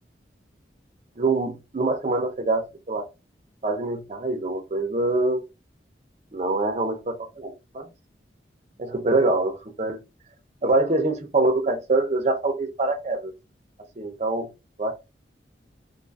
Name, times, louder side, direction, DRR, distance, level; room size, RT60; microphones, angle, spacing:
voice 1, 1.2-3.0 3.6-5.4 6.3-7.9 8.8-10.0 10.6-13.3 14.0-14.5 14.8-14.9, right 2 dB, 40° right, 0.5 m, -24 dB
2.6 x 2.4 x 2.6 m
head